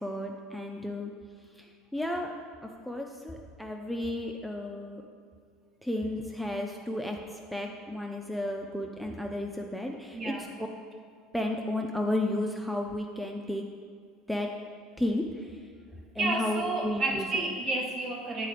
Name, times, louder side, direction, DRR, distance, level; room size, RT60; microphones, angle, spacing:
voice 1, 0.0-1.1 1.6-2.3 2.8-5.0 5.8-7.2 7.5-10.3 10.6-10.7 11.3-13.6 14.3-14.5 15.0-15.6 16.1-17.4, left 1 dB, ahead, 1 dB, 0.4 m, -33 dB
voice 2, 10.1-10.6 16.2-18.5, right 2 dB, 40° right, 0 dB, 1.0 m, -31 dB
8.3 x 3.8 x 3.3 m, 2.1 s
hypercardioid pair, 80°, 0 cm